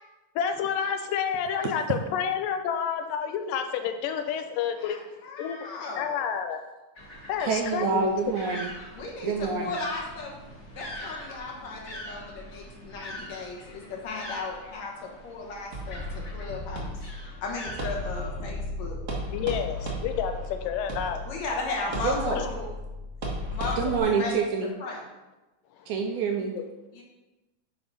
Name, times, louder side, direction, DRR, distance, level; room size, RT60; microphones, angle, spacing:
voice 1, 0.4-5.0 5.4-5.6 6.0-6.6 7.3-8.2 19.3-21.3 22.4-22.5 26.6-26.7, left 7 dB, 90° left, 7 dB, 2.3 m, -29 dB
voice 2, 4.8-6.2 8.9-10.3 10.8-17.1 17.4-19.0 21.2-22.7 23.5-24.5 24.8-25.0 26.9-27.0, left 3 dB, 60° left, -1 dB, 2.4 m, -36 dB
sound 1, 7.0-18.1, left 1 dB, 35° left, 1.2 m, -43 dB
voice 3, 7.4-8.7 9.2-9.7 22.0-22.4 23.8-24.7 25.9-26.5, right 5 dB, 80° right, 3 dB, 1.8 m, -27 dB
sound 2, 15.7-24.0, left 1 dB, 60° right, 0.7 m, -34 dB
6.9 x 4.8 x 5.5 m, 1.1 s
omnidirectional pair, 3.8 m